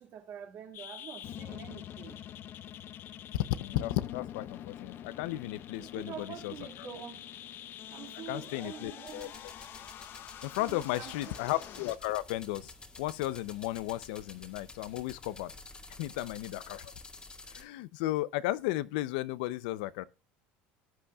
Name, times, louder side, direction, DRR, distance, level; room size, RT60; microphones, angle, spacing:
voice 1, 0.0-2.2 6.0-7.2 7.9-9.3 10.6-11.1, right 9 dB, 50° right, 2.3 m, -46 dB
sound 1, 0.7-12.0, left 11 dB, 50° left, 0.8 m, -45 dB
voice 2, 3.3-6.9 8.3-9.3 10.4-15.5 16.0-16.9 17.5-20.0, left 16 dB, 85° left, 0.6 m, -34 dB
sound 2, 9.1-17.6, left 3 dB, 20° left, 1.9 m, -50 dB
18.5 x 8.6 x 2.4 m
supercardioid pair, 115°, 5 cm